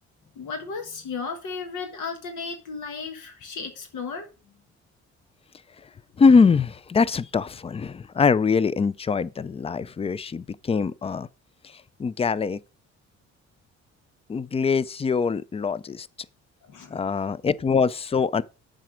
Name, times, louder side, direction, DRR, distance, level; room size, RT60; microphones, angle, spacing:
voice 1, 0.3-4.3 16.6-17.0, left 5 dB, 80° left, 1.4 m, -34 dB
voice 2, 6.2-11.3 12.0-12.6 14.3-16.1 16.9-18.4, left 5 dB, 20° left, 0.4 m, -23 dB
7.5 x 5.0 x 5.0 m
cardioid pair, 90°, 30 cm